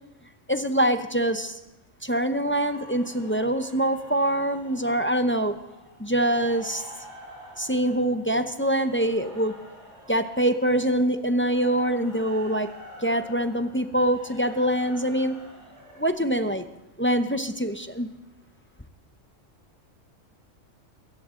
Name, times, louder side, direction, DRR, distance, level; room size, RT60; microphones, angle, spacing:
voice 1, 0.5-1.6 2.0-5.6 6.0-6.8 7.6-9.5 10.1-12.7 13.0-15.4 16.0-16.6 17.0-18.1, right 1 dB, 15° left, 8 dB, 0.6 m, -24 dB
sound 1, 2.5-16.1, equal, 60° right, 6.9 m, -48 dB
22.0 x 17.0 x 3.8 m, 0.92 s
omnidirectional pair, 1.3 m